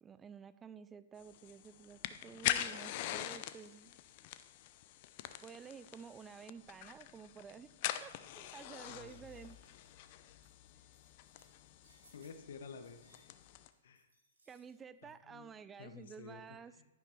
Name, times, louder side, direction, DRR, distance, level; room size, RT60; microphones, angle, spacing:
voice 1, 0.0-4.0 5.4-7.7 8.0-9.6 14.5-16.8, right 6 dB, 20° right, 14 dB, 0.3 m, -52 dB
sound 1, 1.2-13.7, left 13 dB, 45° left, 0.6 m, -43 dB
sound 2, 8.8-15.1, right 2 dB, 80° right, 3.0 m, -70 dB
voice 2, 8.9-9.2 12.1-13.4 13.8-14.1 15.0-15.5 15.8-16.8, left 5 dB, 65° left, 8 dB, 1.2 m, -52 dB
11.0 x 10.0 x 3.2 m, 1.1 s
figure-of-eight pair, 110°, 0 cm